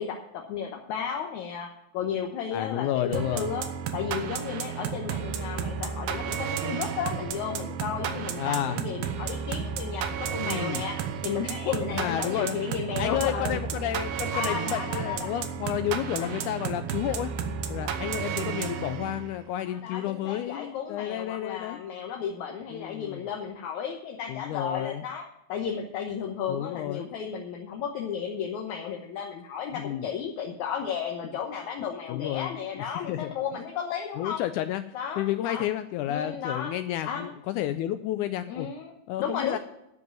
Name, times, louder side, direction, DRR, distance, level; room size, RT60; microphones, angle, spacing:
voice 1, 0.0-3.6 3.9-11.0 11.2-13.6 14.3-15.3 16.2-16.4 19.6-25.2 25.5-34.4 34.9-35.6 36.1-36.7 37.0-37.3 38.5-38.9 39.2-39.6, left 7 dB, 70° left, 1 dB, 2.2 m, -33 dB
voice 2, 2.5-3.5 8.4-8.8 10.4-10.9 11.9-12.6 13.0-17.3 17.7-21.8 22.7-23.2 24.3-25.0 26.5-27.1 29.7-30.1 32.1-32.5 32.8-33.3 34.2-38.7 39.1-39.6, left 12 dB, 85° left, 11 dB, 1.8 m, -31 dB
sound 1, 3.1-19.4, right 7 dB, 90° right, 2.8 m, -32 dB
12.0 x 5.4 x 9.0 m, 0.83 s
omnidirectional pair, 4.1 m